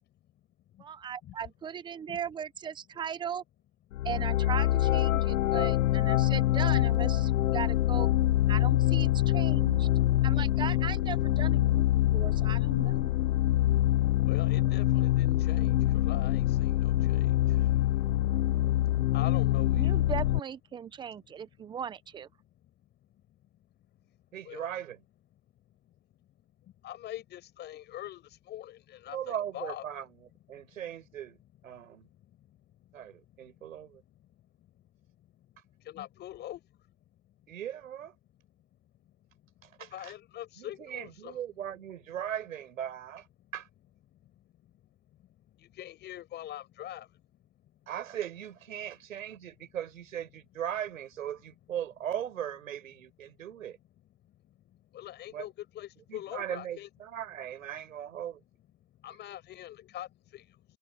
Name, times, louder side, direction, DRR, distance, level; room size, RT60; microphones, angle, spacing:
voice 1, 0.8-3.4 4.0-8.1 8.5-9.9 10.2-13.1 19.7-22.3, right 8 dB, 10° right, 1.0 m, -38 dB
sound 1, 3.9-20.4, left 14 dB, 75° left, 0.6 m, -25 dB
voice 2, 14.3-20.0 21.3-21.8 22.4-23.0 23.3-23.8 24.0-24.2 24.4-24.7 25.7-29.8 30.5-30.7 31.7-36.9 37.2-37.5 38.6-41.4 44.1-47.8 53.4-53.5 54.2-56.9 58.9-60.8, left 13 dB, 25° left, 7.8 m, -46 dB
voice 3, 24.3-25.0 29.1-31.4 31.6-32.1 32.9-34.0 37.5-38.1 39.6-40.1 40.6-43.3 43.5-43.7 47.9-53.8 55.3-55.5 56.1-58.4, right 10 dB, 75° right, 7.1 m, -38 dB
hypercardioid pair, 140°, 41 cm